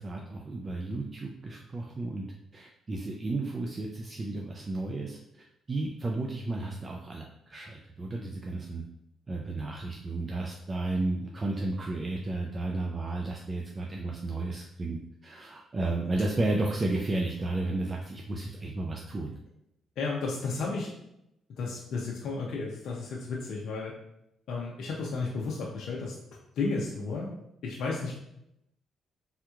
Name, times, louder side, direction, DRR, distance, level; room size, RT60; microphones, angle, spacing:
voice 1, 0.0-2.3 2.5-5.2 5.7-7.2 7.5-8.8 9.3-19.4, right 2 dB, 30° right, 0 dB, 0.4 m, -33 dB
voice 2, 20.0-20.9 21.6-23.9 24.5-26.1 26.6-27.3 27.6-28.1, left 4 dB, 70° left, -3 dB, 0.5 m, -33 dB
3.5 x 2.9 x 2.3 m, 0.82 s
cardioid pair, 90°, 0 cm